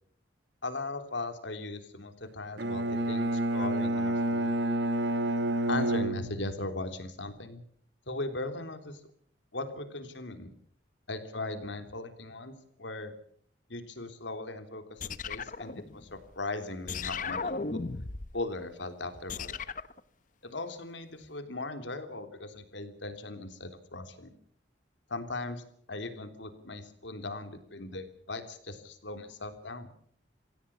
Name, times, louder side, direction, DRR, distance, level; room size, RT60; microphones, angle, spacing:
voice 1, 0.6-4.5 5.7-7.6 8.1-9.0 9.5-10.5 11.1-13.1 13.7-17.8 18.3-19.6 20.4-24.3 25.1-29.9, left 2 dB, 75° left, 7 dB, 3.4 m, -38 dB
Bowed string instrument, 2.6-6.8, right 1 dB, 65° right, 1.5 m, -29 dB
sound 1, 15.0-16.4 16.9-18.4 19.3-20.0, left 4 dB, 40° left, 0.9 m, -36 dB
26.0 x 16.5 x 7.1 m, 0.63 s
head